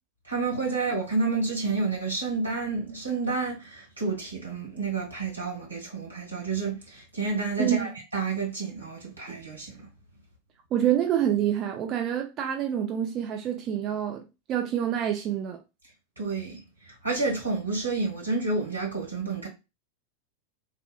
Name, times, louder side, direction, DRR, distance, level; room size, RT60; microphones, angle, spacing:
voice 1, 0.3-9.7 16.2-16.6 17.0-19.5, right 3 dB, 80° right, 1.4 m, -29 dB
voice 2, 7.6-7.9 10.7-14.2 14.5-15.6, right 10 dB, 35° right, 0.4 m, -27 dB
3.6 x 2.3 x 2.3 m
figure-of-eight pair, 90°, 0 cm